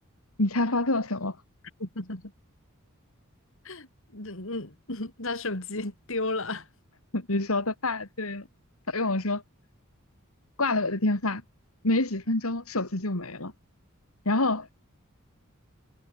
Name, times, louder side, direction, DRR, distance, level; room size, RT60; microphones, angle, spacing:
voice 1, 0.4-1.4 7.1-8.5 8.9-9.4 10.6-11.4 11.8-13.5 14.2-14.7, left 2 dB, 80° left, 3.1 m, -27 dB
voice 2, 1.8-2.3 3.6-6.7, left 2 dB, 65° left, 3.8 m, -34 dB
head